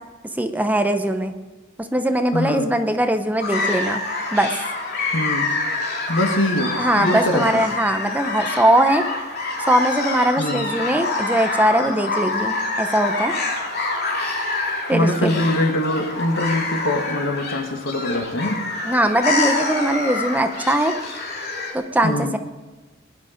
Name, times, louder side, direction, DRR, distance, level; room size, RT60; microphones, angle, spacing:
voice 1, 0.4-1.3 1.8-4.0 4.3-4.5 6.8-9.0 9.7-13.3 14.9-15.4 18.8-20.9 21.7-22.4, right 1 dB, 10° right, 7 dB, 0.8 m, -20 dB
voice 2, 2.3-2.7 5.1-5.5 6.1-7.4 10.4-10.6 14.9-18.6 22.0-22.3, left 1 dB, 80° left, 4 dB, 2.0 m, -23 dB
sound 1, 3.4-21.7, left 3 dB, 50° left, 3.0 m, -26 dB
19.5 x 11.0 x 5.2 m, 1.2 s
head